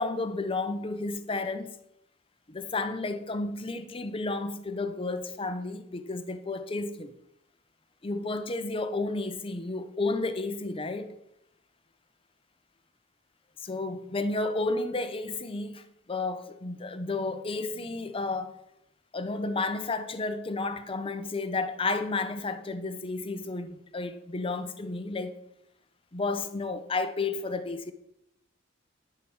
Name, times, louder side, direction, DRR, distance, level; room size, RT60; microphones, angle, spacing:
voice 1, 0.0-1.7 2.5-7.1 8.0-11.2 13.6-18.5 19.1-25.3 26.1-27.9, left 3 dB, 30° left, 0.7 m, -32 dB
10.5 x 4.6 x 6.3 m
head